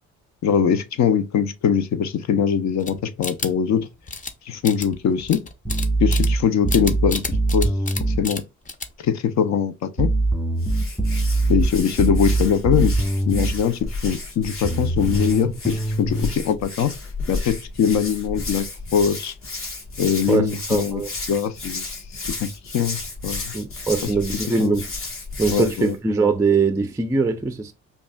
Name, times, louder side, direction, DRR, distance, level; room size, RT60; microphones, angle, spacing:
voice 1, 0.4-3.9 4.5-5.4 6.0-7.2 7.5-7.7 8.2-8.4 9.0-10.1 11.5-12.9 13.3-16.9 17.3-19.3 20.0-21.0 21.3-23.5 24.0-24.1 24.6-24.7 25.5-25.9, left 7 dB, 65° left, 0.7 m, -22 dB
sound 1, 2.8-3.8 4.1-4.3 4.6-6.4 6.7-8.0 8.2-8.4 8.7-9.1, left 3 dB, 25° left, 0.7 m, -30 dB
sound 2, 5.7-8.2 10.0-13.6 14.7-16.3, right 2 dB, 5° left, 1.2 m, -22 dB
Hands, 10.5-26.0, left 3 dB, 45° left, 1.4 m, -32 dB
voice 2, 20.3-21.1 23.5-24.9 25.4-27.7, right 4 dB, 10° right, 0.4 m, -22 dB
5.2 x 2.4 x 2.2 m
cardioid pair, 90°, 30 cm